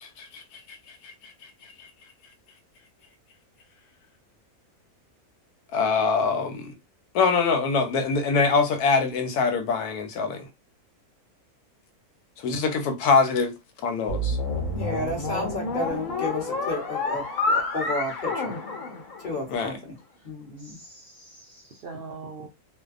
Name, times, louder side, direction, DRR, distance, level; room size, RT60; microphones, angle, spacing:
voice 1, 0.0-1.3 1.8-1.9 5.7-6.7 7.1-10.5 12.4-13.5 13.8-14.4 19.5-19.8, left 4 dB, 90° left, 1.1 m, -24 dB
sound 1, 14.1-19.6, left 2 dB, 65° left, 1.1 m, -29 dB
voice 2, 14.7-18.5 19.2-20.0 20.2-20.8, left 1 dB, 40° left, 0.8 m, -32 dB
voice 3, 20.6-22.5, right 4 dB, 85° right, 0.5 m, -42 dB
2.6 x 2.1 x 2.4 m
omnidirectional pair, 1.6 m